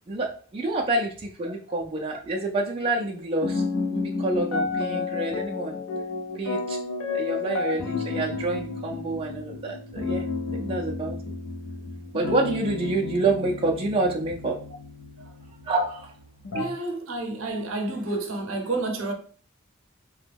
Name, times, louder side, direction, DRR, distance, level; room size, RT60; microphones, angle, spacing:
voice 1, 0.1-3.6 3.9-5.7 6.4-6.8 7.1-11.1 12.1-14.6 15.6-16.1, right 2 dB, 25° right, 0.3 m, -28 dB
Deep House Chords - Morphagene Reely by Peng Punker, 2.8-16.7, left 4 dB, 75° left, 0.5 m, -32 dB
voice 2, 16.5-19.1, right 2 dB, 70° right, 0.6 m, -29 dB
2.9 x 2.2 x 3.3 m
head